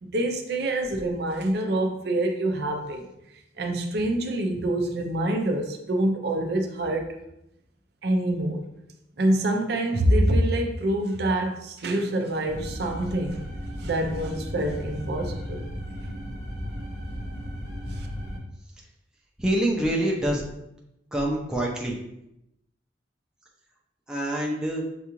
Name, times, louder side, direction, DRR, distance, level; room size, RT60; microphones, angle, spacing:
voice 1, 0.0-3.0 3.6-7.1 8.0-8.6 9.2-13.4 13.8-15.7 18.0-18.1, right 1 dB, 55° right, 3 dB, 0.5 m, -26 dB
sound 1, 12.5-18.4, equal, 50° left, 1.1 m, -35 dB
voice 2, 19.4-20.4 21.1-22.0 24.1-24.8, right 1 dB, 5° right, -2 dB, 0.5 m, -25 dB
6.7 x 2.4 x 3.0 m, 0.84 s
head